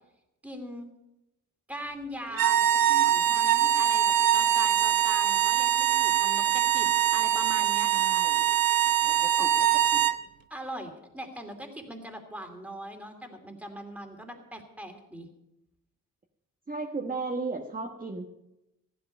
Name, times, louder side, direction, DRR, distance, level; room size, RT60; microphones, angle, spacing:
voice 1, 0.4-0.9 1.7-7.9 9.4-9.6 10.5-15.3, equal, 5° right, 3 dB, 2.6 m, -41 dB
sound 1, 2.3-10.2, right 11 dB, 75° right, 0.8 m, -23 dB
voice 2, 7.9-8.5 9.0-10.1 16.7-18.2, right 3 dB, 25° right, 0 dB, 1.3 m, -36 dB
15.0 x 12.0 x 5.4 m, 0.87 s
cardioid pair, 100°, 34 cm